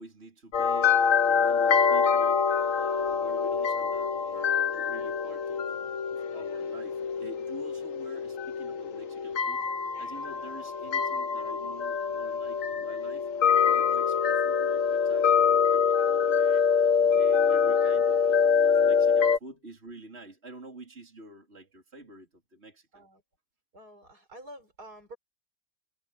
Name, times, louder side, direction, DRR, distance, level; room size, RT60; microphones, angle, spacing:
voice 1, 0.0-2.4 2.7-13.3 13.6-23.0, right 2 dB, 40° right, 4.2 m, -48 dB
sound 1, 0.5-19.4, left 6 dB, 55° left, 1.4 m, -25 dB
voice 2, 17.0-17.4 22.9-23.2 23.7-25.2, right 1 dB, 75° right, 5.8 m, -49 dB
omnidirectional pair, 1.7 m